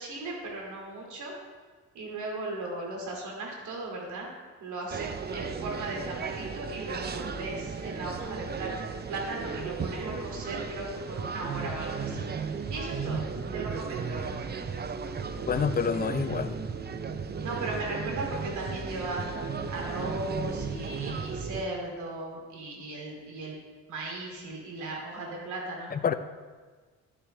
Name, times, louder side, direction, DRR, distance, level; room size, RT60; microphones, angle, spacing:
voice 1, 0.0-1.4 1.9-4.3 4.6-14.3 17.4-19.3 19.7-23.6 23.9-25.9, right 2 dB, 75° right, -1 dB, 2.6 m, -37 dB
sound 1, 4.9-21.6, right 5 dB, 35° right, 0.6 m, -35 dB
voice 2, 15.5-16.6 25.9-26.1, left 6 dB, 30° left, 11 dB, 0.6 m, -27 dB
12.5 x 6.7 x 3.3 m, 1.4 s
cardioid pair, 90°, 30 cm